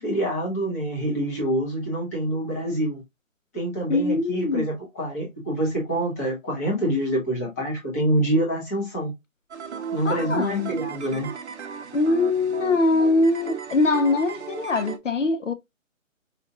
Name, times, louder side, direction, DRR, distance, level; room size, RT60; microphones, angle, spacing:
voice 1, 0.0-3.0 3.5-9.1 9.9-11.3, right 1 dB, 10° left, 0.8 m, -26 dB
voice 2, 3.9-4.7 10.0-10.7 11.9-15.5, left 3 dB, 65° left, 0.7 m, -22 dB
sound 1, 9.5-15.0, right 7 dB, 55° right, 0.7 m, -35 dB
5.1 x 2.4 x 2.7 m
figure-of-eight pair, 150°, 41 cm